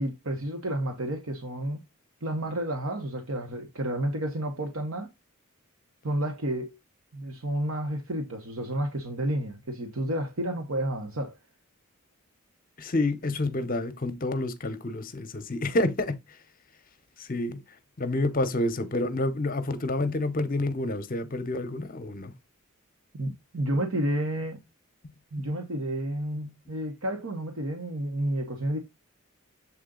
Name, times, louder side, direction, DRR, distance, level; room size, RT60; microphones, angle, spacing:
voice 1, 0.0-1.8 2.2-5.1 6.0-6.7 7.1-11.4 23.1-24.6 25.3-28.8, right 1 dB, 70° right, 1.2 m, -31 dB
voice 2, 12.8-16.4 17.2-17.6 18.0-22.3, left 2 dB, 40° left, 0.8 m, -28 dB
7.5 x 3.9 x 3.8 m
head